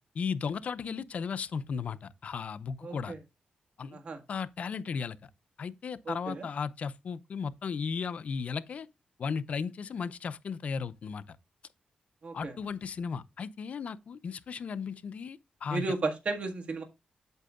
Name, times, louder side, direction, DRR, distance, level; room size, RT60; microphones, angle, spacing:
voice 1, 0.1-3.1 3.8-4.0 4.3-5.2 5.6-8.9 9.2-11.4 12.3-15.8, left 6 dB, 60° left, 0.7 m, -35 dB
voice 2, 2.8-3.2 3.9-4.2 6.1-6.4 12.2-12.5 15.7-16.8, right 3 dB, 55° right, 1.7 m, -34 dB
8.6 x 8.0 x 2.4 m
wide cardioid pair, 110°, 3 cm